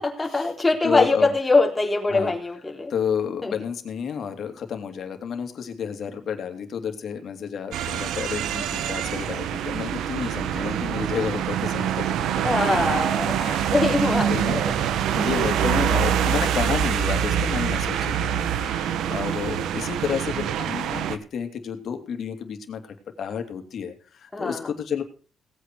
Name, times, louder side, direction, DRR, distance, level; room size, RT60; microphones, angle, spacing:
voice 1, 0.0-2.9 3.4-3.5 12.4-14.6 18.9-19.2 24.3-24.7, left 3 dB, 15° left, 2 dB, 4.0 m, -23 dB
voice 2, 0.8-1.3 2.1-2.3 2.9-12.7 13.4-14.6 15.1-25.0, left 7 dB, 60° left, 6 dB, 2.8 m, -31 dB
sound 1, 7.7-21.2, right 9 dB, 80° right, 1.2 m, -25 dB
18.0 x 8.7 x 4.7 m, 0.38 s
cardioid pair, 90°, 0 cm